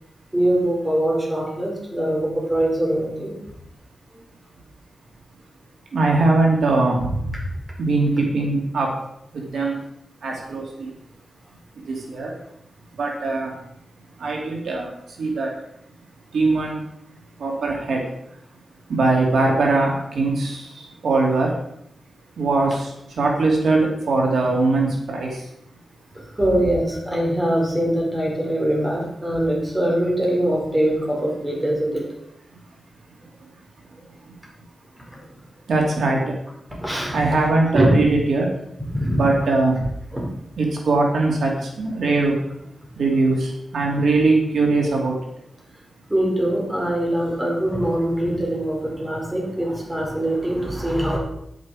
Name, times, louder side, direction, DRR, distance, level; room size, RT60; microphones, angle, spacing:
voice 1, 0.3-3.4 26.1-32.1 35.0-35.4 36.8-37.2 37.7-37.9 38.8-39.2 40.1-40.3 46.1-51.2, right 1 dB, 15° right, -2 dB, 4.8 m, -23 dB
voice 2, 5.9-7.5 7.8-8.9 9.3-9.8 10.2-10.9 11.8-12.4 13.0-13.6 14.2-15.6 16.3-16.8 17.4-18.1 18.9-21.6 22.4-25.5 26.6-26.7 32.5-32.6 34.3-34.4 35.7-36.3 37.1-38.5 39.1-39.9 40.6-42.4 43.0-45.2, right 3 dB, 90° right, 0 dB, 2.5 m, -21 dB
10.0 x 9.4 x 4.9 m, 0.77 s
wide cardioid pair, 90°, 0 cm